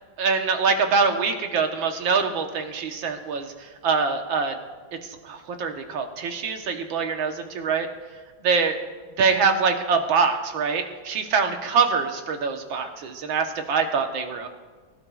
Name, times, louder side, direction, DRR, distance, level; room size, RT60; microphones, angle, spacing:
voice 1, 0.2-4.6 5.0-7.9 8.4-8.8 9.2-14.5, right 5 dB, 75° right, 5 dB, 1.8 m, -24 dB
22.5 x 12.0 x 2.4 m, 1.4 s
omnidirectional pair, 2.2 m